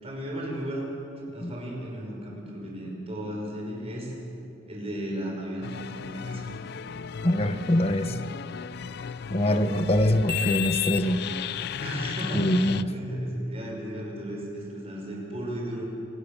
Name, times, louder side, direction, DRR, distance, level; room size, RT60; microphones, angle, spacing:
voice 1, 0.0-0.9 1.3-4.1 4.7-5.7 6.1-6.5 11.8-15.8, right 1 dB, 30° right, -1 dB, 6.1 m, -34 dB
sound 1, 5.6-12.8, left 9 dB, 55° left, 0.4 m, -34 dB
voice 2, 7.2-8.2 9.3-11.2 12.3-12.9, left 1 dB, 30° left, 10 dB, 1.0 m, -24 dB
26.5 x 19.5 x 7.0 m, 2.7 s
head